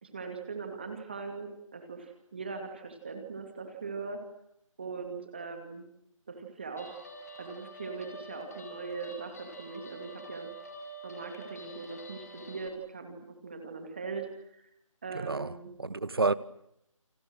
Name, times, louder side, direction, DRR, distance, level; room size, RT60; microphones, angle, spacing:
voice 1, 0.0-4.2 4.8-5.8 6.3-7.0 7.4-10.5 11.0-14.3 14.5-14.6 15.0-15.7, right 4 dB, 20° right, 2.5 m, -40 dB
Guitar, 6.8-12.7, equal, 30° left, 4.9 m, -47 dB
voice 2, 15.1-16.3, right 3 dB, 45° right, 1.3 m, -30 dB
30.0 x 27.5 x 6.3 m
figure-of-eight pair, 175°, 18 cm